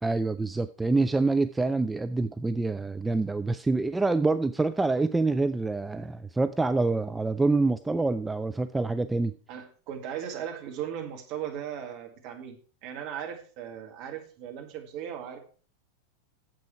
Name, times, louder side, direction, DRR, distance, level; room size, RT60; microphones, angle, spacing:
voice 1, 0.0-9.3, right 3 dB, 10° right, 0.3 m, -26 dB
voice 2, 9.5-15.4, right 9 dB, 45° right, 1.9 m, -37 dB
9.2 x 7.5 x 4.6 m
figure-of-eight pair, 90°, 0 cm